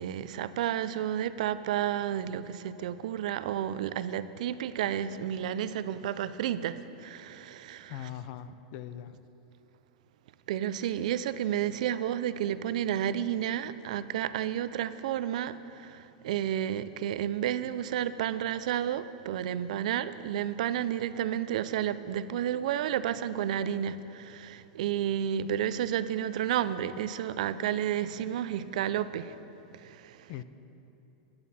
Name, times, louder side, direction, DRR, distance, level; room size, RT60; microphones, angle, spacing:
voice 1, 0.0-8.1 10.5-29.4 29.7-30.3, right 10 dB, 75° right, 0.5 m, -31 dB
voice 2, 7.9-9.2 30.3-30.4, left 10 dB, 55° left, 0.5 m, -40 dB
14.5 x 10.5 x 4.2 m
supercardioid pair, 145°, 4 cm